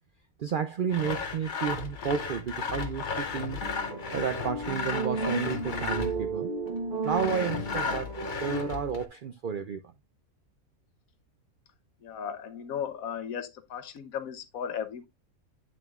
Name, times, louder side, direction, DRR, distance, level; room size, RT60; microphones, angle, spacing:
voice 1, 0.4-3.6 4.1-6.6 7.0-9.8, right 7 dB, 75° right, 0.4 m, -31 dB
Sawing, 0.9-6.3 7.0-9.1, left 5 dB, 45° left, 0.7 m, -34 dB
sound 1, 3.6-9.0, right 3 dB, 30° right, 1.2 m, -34 dB
voice 2, 12.0-15.1, left 8 dB, 75° left, 1.3 m, -36 dB
9.1 x 6.2 x 2.4 m
omnidirectional pair, 1.5 m